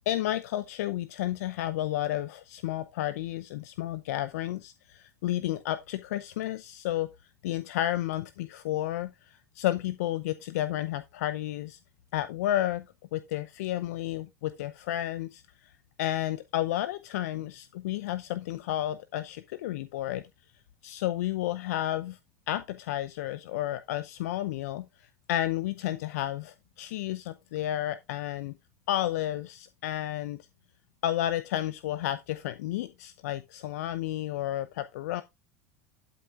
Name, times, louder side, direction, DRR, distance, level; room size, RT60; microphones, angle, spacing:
voice 1, 0.1-7.1 7.4-11.8 12.1-12.8 13.1-15.7 16.0-20.2 20.8-22.2 22.5-28.5 28.9-30.4 31.0-35.2, left 13 dB, 70° left, 0.7 m, -31 dB
12.0 x 7.7 x 2.4 m
hypercardioid pair, 80°, 9 cm